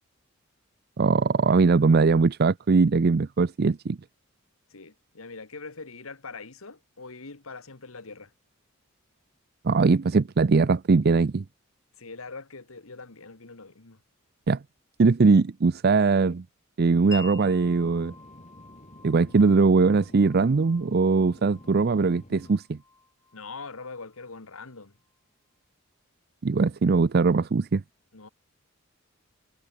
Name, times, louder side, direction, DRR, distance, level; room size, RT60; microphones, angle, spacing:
voice 1, 1.0-4.0 9.6-11.4 14.5-14.6 15.0-16.4 16.8-18.1 19.0-22.8 26.4-27.8, right 4 dB, 45° right, 0.5 m, -21 dB
voice 2, 4.7-8.3 12.0-14.0 23.3-25.0 28.1-28.3, left 4 dB, 75° left, 1.7 m, -42 dB
sound 1, 16.9-22.5, equal, 35° left, 4.8 m, -50 dB
Wind chime, 17.1-24.7, left 3 dB, 15° left, 1.6 m, -48 dB
head